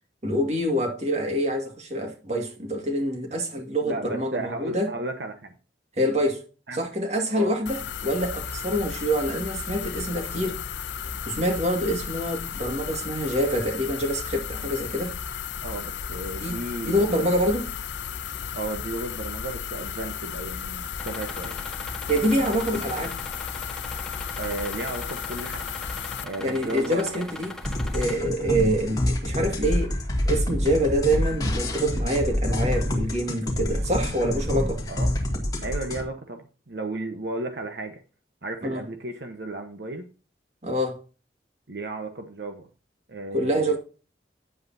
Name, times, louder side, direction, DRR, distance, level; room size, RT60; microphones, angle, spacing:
voice 1, 0.2-4.9 6.0-6.4 6.7-10.6 11.3-15.2 16.4-17.7 22.1-23.2 26.4-27.6 27.9-29.9 30.3-34.8 38.6-38.8 40.6-41.0 43.3-43.8, equal, 40° right, 2.0 m, -26 dB
voice 2, 3.8-5.5 6.7-6.8 7.3-7.6 15.6-17.2 18.5-21.6 22.7-22.8 24.4-25.7 26.2-27.2 34.9-35.1 35.6-38.0 38.4-40.1 41.7-42.7 43.1-43.8, right 2 dB, 70° right, 1.1 m, -34 dB
sound 1, 7.7-26.2, left 7 dB, 80° left, 0.6 m, -34 dB
sound 2, 21.0-28.2, left 2 dB, 5° left, 1.3 m, -40 dB
sound 3, 27.6-36.0, left 1 dB, 20° left, 1.9 m, -27 dB
9.7 x 8.1 x 2.8 m
head